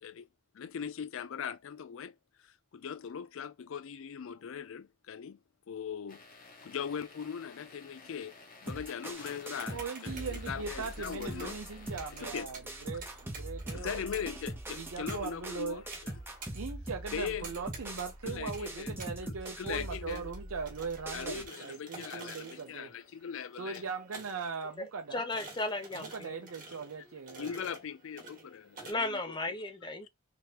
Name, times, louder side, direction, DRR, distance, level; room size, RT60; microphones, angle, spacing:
voice 1, 0.5-5.4 5.7-8.4 8.6-11.6 12.2-12.5 13.7-16.1 17.1-17.5 18.2-19.0 19.2-20.3 21.1-23.8 27.4-29.6 30.0-30.1, left 7 dB, 65° left, 0.4 m, -40 dB
sound 1, 6.1-12.3, left 4 dB, 40° left, 1.1 m, -54 dB
sound 2, 8.7-21.5, right 1 dB, 10° right, 0.8 m, -42 dB
sound 3, 9.1-28.9, right 3 dB, 40° right, 1.4 m, -51 dB
voice 2, 9.7-14.1 14.7-15.8 16.5-22.9 23.6-25.3 25.9-27.5, right 5 dB, 75° right, 0.6 m, -40 dB
voice 3, 24.8-26.1 27.4-27.7 28.9-30.1, left 2 dB, 20° left, 0.7 m, -35 dB
3.5 x 3.2 x 2.9 m
head